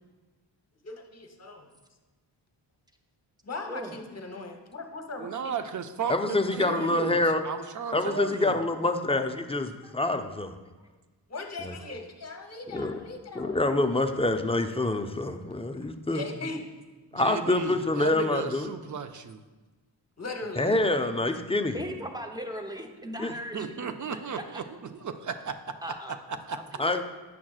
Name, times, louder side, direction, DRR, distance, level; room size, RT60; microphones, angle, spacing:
voice 1, 0.8-1.7 3.4-5.6 6.0-6.1 6.6-7.1 11.3-13.6 16.1-16.6 20.2-20.7 26.3-26.4, left 2 dB, 35° left, 4 dB, 0.9 m, -39 dB
voice 2, 5.2-7.2 7.4-8.6 17.2-19.4 23.5-25.6 26.5-26.6, right 6 dB, 40° right, 9 dB, 0.5 m, -35 dB
voice 3, 6.1-7.4 7.9-10.5 11.6-11.7 12.7-12.9 13.3-16.2 17.1-18.7 20.6-21.8 23.2-23.3 26.8-27.0, left 2 dB, 15° left, 7 dB, 0.4 m, -26 dB
voice 4, 21.7-23.7 25.8-26.2 26.5-27.0, equal, 10° right, 3 dB, 0.7 m, -38 dB
8.5 x 5.9 x 2.4 m, 1.3 s
cardioid pair, 50°, 47 cm